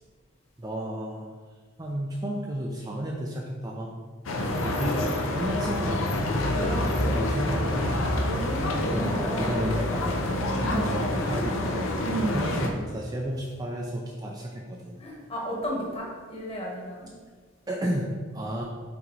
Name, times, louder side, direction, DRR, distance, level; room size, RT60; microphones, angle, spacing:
voice 1, 0.6-1.4 1.8-4.0 4.6-6.4 6.6-7.9 8.9-10.2 10.6-15.0 17.7-18.6, equal, 20° right, -1 dB, 0.4 m, -33 dB
sound 1, 4.3-12.7, left 1 dB, 70° left, 0.7 m, -27 dB
voice 2, 4.4-4.8 6.5-7.2 8.1-9.7 10.6-10.8 12.0-12.5 15.0-17.2, right 1 dB, 30° left, -2 dB, 1.3 m, -34 dB
5.7 x 4.4 x 3.9 m, 1.5 s
head